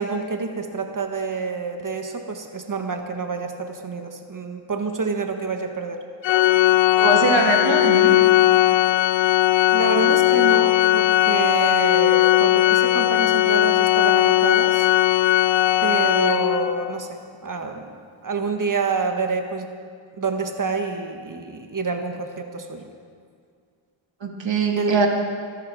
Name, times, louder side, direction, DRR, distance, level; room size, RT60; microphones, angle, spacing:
voice 1, 0.0-6.0 9.7-14.9 15.8-18.0 18.2-19.7 20.1-22.9 24.8-25.1, right 4 dB, 40° right, 5 dB, 1.4 m, -27 dB
Organ, 6.2-16.9, left 15 dB, 65° left, 0.6 m, -18 dB
voice 2, 7.0-8.2 24.2-25.1, right 3 dB, 65° right, 1 dB, 2.5 m, -21 dB
23.0 x 11.5 x 4.8 m, 2.1 s
cardioid pair, 75°, 49 cm